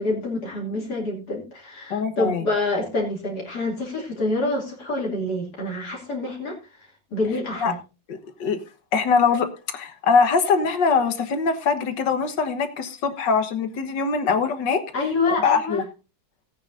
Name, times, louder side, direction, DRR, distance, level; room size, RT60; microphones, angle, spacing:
voice 1, 0.0-7.8 14.9-15.8, left 2 dB, 60° left, -2 dB, 3.3 m, -27 dB
voice 2, 1.9-2.4 7.6-7.7 8.1-8.6 8.9-14.8 15.4-15.8, left 5 dB, 85° left, 9 dB, 1.9 m, -22 dB
17.5 x 9.0 x 2.6 m, 0.31 s
omnidirectional pair, 1.9 m